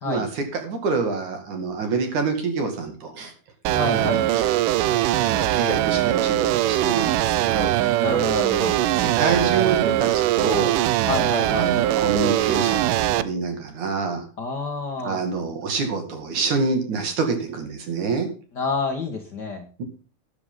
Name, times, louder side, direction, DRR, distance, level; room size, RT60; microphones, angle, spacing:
voice 1, 0.1-3.3 3.9-4.5 5.3-7.9 9.0-10.8 11.5-14.3 15.0-18.3 19.8-19.9, right 4 dB, 55° right, 5 dB, 3.4 m, -26 dB
voice 2, 3.7-4.2 8.0-8.8 11.0-11.7 14.4-15.2 18.5-19.6, left 4 dB, 60° left, 4 dB, 1.1 m, -28 dB
sound 1, 3.7-13.2, right 13 dB, 80° right, 1.9 m, -21 dB
13.0 x 11.0 x 3.8 m, 0.36 s
omnidirectional pair, 4.5 m